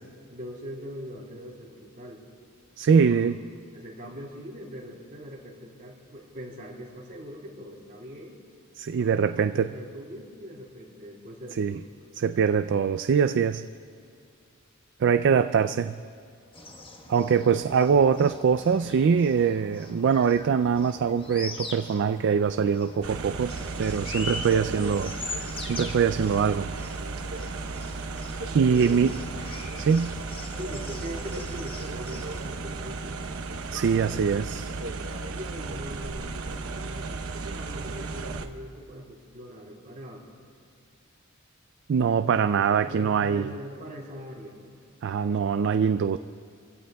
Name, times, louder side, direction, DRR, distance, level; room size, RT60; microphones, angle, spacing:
voice 1, 0.3-2.2 2.9-3.3 3.7-8.4 8.9-11.8 30.5-33.2 35.3-40.2 42.8-44.8, equal, 40° right, -3 dB, 3.3 m, -41 dB
voice 2, 2.8-3.4 8.8-9.7 11.6-11.8 12.2-13.7 15.0-16.0 17.1-23.5 23.8-26.7 28.5-29.2 29.8-30.2 33.7-34.7 41.9-43.5 45.0-46.2, right 6 dB, 60° right, 10 dB, 0.3 m, -23 dB
sound 1, 16.5-32.5, left 2 dB, 25° left, 1.3 m, -42 dB
sound 2, 23.0-38.5, right 3 dB, 85° right, 0.9 m, -35 dB
26.5 x 16.5 x 2.3 m, 2.3 s
head